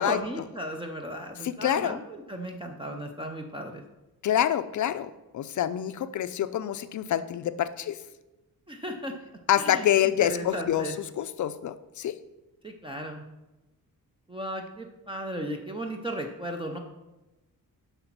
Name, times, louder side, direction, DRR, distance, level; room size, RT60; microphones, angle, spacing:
voice 1, 0.0-3.8 8.7-9.1 9.6-9.8 10.2-10.9 12.6-13.2 14.3-16.8, equal, 15° right, 3 dB, 0.5 m, -35 dB
voice 2, 1.4-2.0 4.2-8.0 9.5-12.2, left 11 dB, 55° left, 13 dB, 0.5 m, -27 dB
7.9 x 5.7 x 5.9 m, 1.0 s
wide cardioid pair, 170°, 35 cm